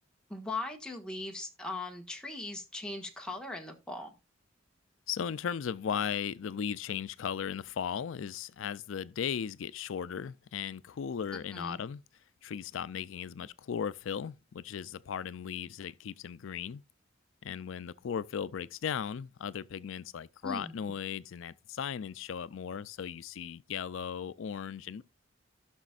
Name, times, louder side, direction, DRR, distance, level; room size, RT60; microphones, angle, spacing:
voice 1, 0.3-4.1 11.5-11.8 20.4-20.8, left 2 dB, 5° left, 1.5 m, -39 dB
voice 2, 5.1-12.0 12.4-16.8 17.4-25.0, left 7 dB, 90° left, 0.4 m, -37 dB
16.0 x 6.1 x 2.4 m
head